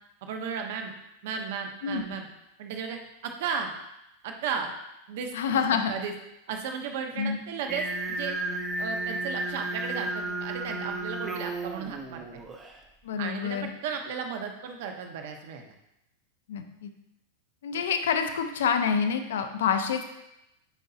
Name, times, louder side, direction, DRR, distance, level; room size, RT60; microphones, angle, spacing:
voice 1, 0.2-0.9 1.2-2.3 2.6-3.7 4.2-4.7 5.1-5.3 5.7-6.1 6.5-8.4 8.8-12.2 13.2-15.7, right 6 dB, 50° right, 4 dB, 0.8 m, -35 dB
voice 2, 5.3-6.0 7.2-7.4 13.0-13.7 16.5-16.9 17.6-20.0, left 7 dB, 80° left, 7 dB, 0.7 m, -27 dB
Singing, 7.7-12.8, right 2 dB, 15° right, 0.5 m, -33 dB
8.1 x 4.8 x 2.8 m, 0.86 s
supercardioid pair, 170°, 0 cm